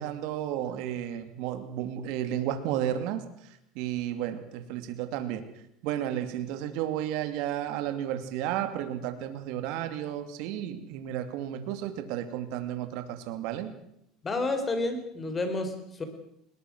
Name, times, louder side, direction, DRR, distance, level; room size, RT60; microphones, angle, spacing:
voice 1, 0.0-3.3 3.7-5.5 5.8-13.8, right 11 dB, 70° right, 8 dB, 2.6 m, -32 dB
voice 2, 14.2-16.0, left 2 dB, 25° left, 8 dB, 4.2 m, -30 dB
21.0 x 20.0 x 6.2 m, 0.74 s
supercardioid pair, 125°, 0 cm